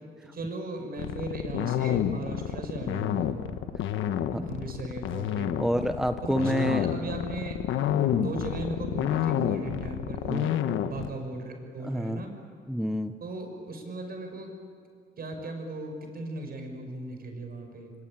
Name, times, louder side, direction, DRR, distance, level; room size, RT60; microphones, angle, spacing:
voice 1, 0.2-3.4 4.0-5.6 6.2-7.6 8.1-10.5 10.8-12.4 13.2-14.5 15.2-17.9, right 2 dB, 50° right, 4 dB, 6.4 m, -37 dB
sound 1, 1.0-11.1, left 10 dB, 90° left, 1.3 m, -29 dB
voice 2, 5.6-6.9 8.1-8.3 10.2-10.5 11.8-12.2 12.7-13.1, equal, ahead, 9 dB, 0.8 m, -28 dB
24.5 x 24.0 x 9.1 m, 2.3 s
cardioid pair, 90°, 20 cm